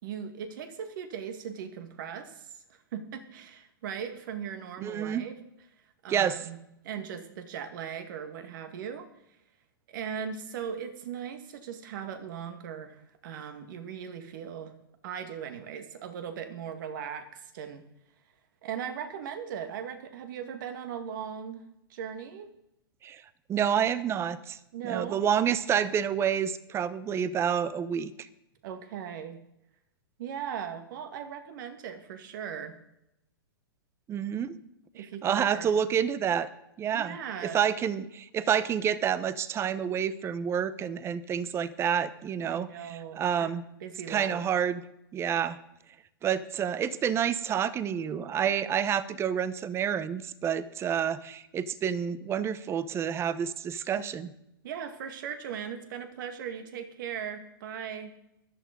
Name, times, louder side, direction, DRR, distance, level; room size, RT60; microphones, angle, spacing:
voice 1, 0.0-5.3 6.0-6.6 6.8-9.1 9.9-14.7 15.0-17.8 18.6-21.6 21.9-22.5 24.7-25.2 28.6-29.4 30.2-32.8 34.9-35.7 36.9-37.6 42.4-43.5 43.8-44.4 54.6-58.1, right 8 dB, 55° right, 8 dB, 2.0 m, -38 dB
voice 2, 4.8-5.2 6.1-6.4 23.0-23.2 23.5-24.6 24.8-28.3 34.1-34.6 35.0-36.5 36.8-43.6 44.1-44.8 45.1-45.6 46.2-54.3, right 8 dB, 20° right, 17 dB, 0.8 m, -29 dB
14.0 x 11.0 x 5.2 m, 0.83 s
hypercardioid pair, 120°, 12 cm